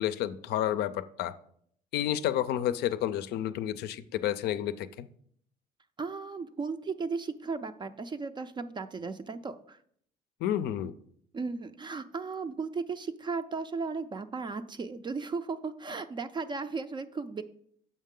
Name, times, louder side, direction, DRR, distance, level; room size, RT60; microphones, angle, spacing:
voice 1, 0.0-1.3 1.9-5.1 10.4-10.9, left 11 dB, 75° left, 13 dB, 0.5 m, -30 dB
voice 2, 6.0-9.8 11.3-17.4, right 4 dB, 25° right, 10 dB, 0.4 m, -35 dB
7.3 x 5.5 x 3.7 m, 0.65 s
cardioid pair, 110°, 17 cm